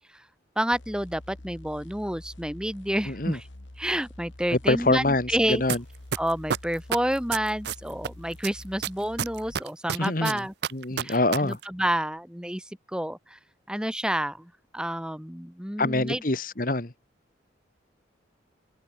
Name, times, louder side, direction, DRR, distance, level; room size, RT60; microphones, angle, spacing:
voice 1, 0.6-3.5 3.8-5.6 6.2-10.5 11.0-13.4 13.7-16.2, equal, 5° right, 2.2 m, -29 dB
sound 1, 0.7-9.6, left 1 dB, 80° left, 2.0 m, -46 dB
voice 2, 3.1-3.4 4.7-5.8 10.0-10.4 10.7-11.6 15.8-16.9, left 2 dB, 45° left, 1.6 m, -25 dB
sound 2, 5.7-5.8 6.1-8.1 8.4-11.4 11.6-11.7, right 8 dB, 60° right, 0.5 m, -28 dB
head